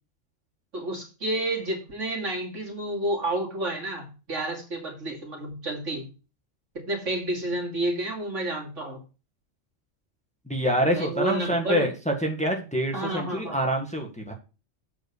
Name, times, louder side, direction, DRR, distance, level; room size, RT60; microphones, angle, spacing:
voice 1, 0.7-6.1 6.7-9.0 10.9-11.9 12.9-13.6, right 1 dB, 75° right, -1 dB, 3.0 m, -30 dB
voice 2, 10.5-14.3, equal, 5° left, 2 dB, 1.5 m, -26 dB
7.6 x 4.8 x 6.8 m, 0.32 s
omnidirectional pair, 1.3 m